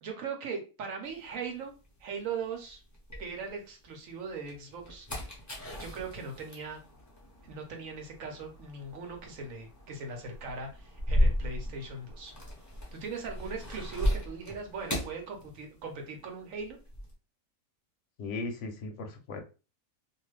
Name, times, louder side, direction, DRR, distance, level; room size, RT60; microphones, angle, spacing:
voice 1, 0.0-1.7 2.0-2.8 3.2-5.2 5.8-6.8 7.4-12.3 12.9-16.8, right 4 dB, 70° right, 3 dB, 1.2 m, -39 dB
sound 1, 1.1-3.8 4.3-16.1 16.3-17.1, equal, 20° left, 0.6 m, -35 dB
voice 2, 18.2-19.4, left 3 dB, 65° left, 5 dB, 0.9 m, -37 dB
2.6 x 2.4 x 3.2 m, 0.32 s
omnidirectional pair, 1.5 m